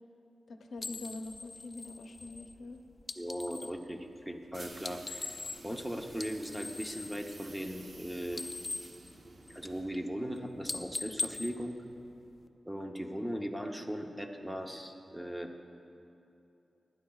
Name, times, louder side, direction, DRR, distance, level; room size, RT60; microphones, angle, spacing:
voice 1, 0.5-2.8, left 2 dB, 80° left, 4 dB, 0.7 m, -44 dB
sound 1, 0.8-3.8 4.7-5.8 6.1-8.0 8.2-9.8 10.2-10.4 10.6-12.5, left 3 dB, 35° left, 0.5 m, -41 dB
voice 2, 3.2-5.4 5.6-8.4 9.5-11.8 12.7-15.5, equal, 5° right, 3 dB, 0.8 m, -38 dB
sound 2, 4.5-10.2, right 2 dB, 40° right, 0.9 m, -52 dB
20.0 x 10.5 x 2.4 m, 2.8 s
wide cardioid pair, 100°, 0 cm